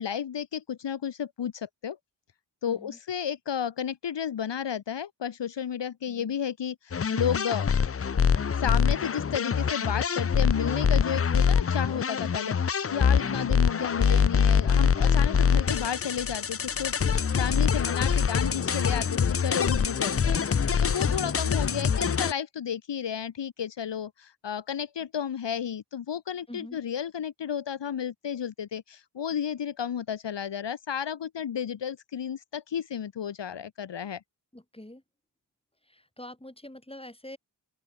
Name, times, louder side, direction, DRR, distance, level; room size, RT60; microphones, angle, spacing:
voice 1, 0.0-2.0 2.6-7.7 8.5-34.2, left 8 dB, 75° left, 0.9 m, -32 dB
voice 2, 2.7-3.0 6.1-6.4 13.2-13.5 26.5-26.8 34.5-35.0 35.8-37.4, left 1 dB, 15° left, 5.6 m, -45 dB
sound 1, 6.9-22.3, left 6 dB, 35° left, 0.5 m, -24 dB
open air
cardioid pair, 50°, 44 cm